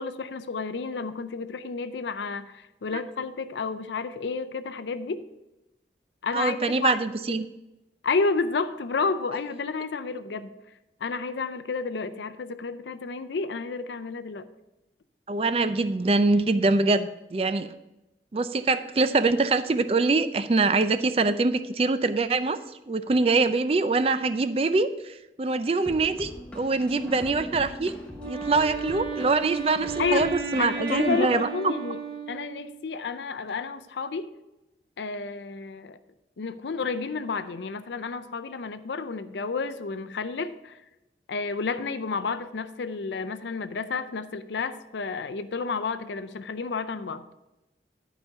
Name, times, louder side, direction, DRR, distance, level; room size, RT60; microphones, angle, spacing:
voice 1, 0.0-5.3 6.2-7.0 8.0-10.6 11.0-14.4 30.0-30.2 30.6-32.0 32.3-34.4 35.0-36.0 36.4-40.8 41.3-47.2, left 4 dB, 85° left, 11 dB, 0.5 m, -31 dB
voice 2, 6.3-7.4 15.3-17.7 18.3-22.6 22.9-27.9 28.2-31.7, right 3 dB, 35° right, 12 dB, 0.4 m, -24 dB
sound 1, 25.9-31.2, equal, 5° left, 1.0 m, -42 dB
Wind instrument woodwind instrument, 28.2-32.9, right 5 dB, 70° right, 1.3 m, -34 dB
11.5 x 5.0 x 5.7 m, 0.98 s
head